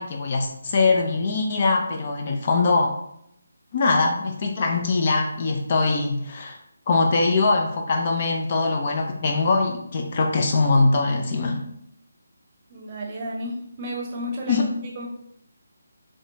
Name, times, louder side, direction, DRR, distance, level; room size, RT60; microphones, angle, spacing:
voice 1, 0.0-2.9 3.7-6.6 6.9-11.6 14.5-14.7, left 3 dB, 40° left, 2 dB, 0.5 m, -22 dB
voice 2, 12.7-15.1, equal, 30° right, -1 dB, 0.8 m, -33 dB
3.6 x 3.1 x 2.7 m, 0.75 s
figure-of-eight pair, 155°, 0 cm